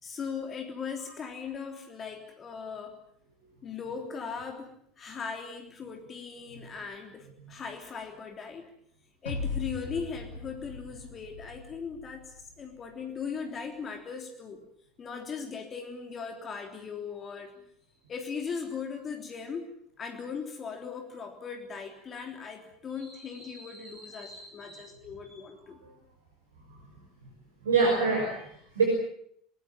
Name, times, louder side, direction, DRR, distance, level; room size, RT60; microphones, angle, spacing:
voice 1, 0.0-3.0 3.6-8.7 9.2-14.6 15.0-17.5 18.1-19.7 20.0-25.8, left 6 dB, 35° left, 4 dB, 3.4 m, -39 dB
sound 1, 9.3-12.5, left 4 dB, 80° left, 2.6 m, -38 dB
voice 2, 23.0-24.8 25.8-25.9 27.6-28.9, right 4 dB, 75° right, 2 dB, 5.7 m, -29 dB
29.0 x 19.5 x 7.4 m, 0.68 s
figure-of-eight pair, 70°, 0 cm